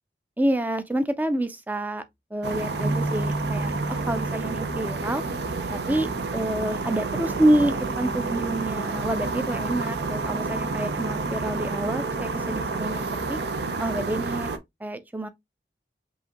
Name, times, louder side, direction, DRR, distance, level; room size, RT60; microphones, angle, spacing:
voice 1, 0.4-2.0 2.3-5.2 5.7-6.1 6.3-13.4 13.8-15.3, right 1 dB, 10° right, 0.4 m, -27 dB
sound 1, 2.4-14.6, right 3 dB, 70° right, 0.6 m, -29 dB
sound 2, 2.8-6.3, right 2 dB, 35° right, 1.6 m, -32 dB
5.6 x 2.7 x 2.9 m
head